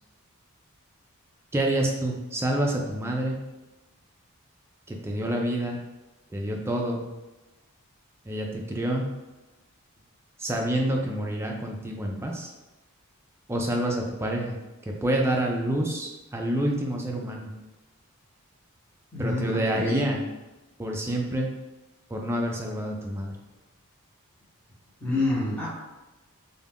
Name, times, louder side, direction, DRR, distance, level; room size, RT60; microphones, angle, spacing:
voice 1, 1.5-3.4 4.9-5.8 6.3-7.0 8.2-9.1 10.4-12.5 13.5-14.6 15.0-17.5 19.2-20.2 20.8-21.5 22.1-23.3, right 1 dB, 10° right, 0 dB, 0.3 m, -27 dB
voice 2, 19.1-20.1 25.0-25.7, left 2 dB, 5° left, -8 dB, 0.9 m, -27 dB
2.4 x 2.2 x 3.4 m, 1.1 s
head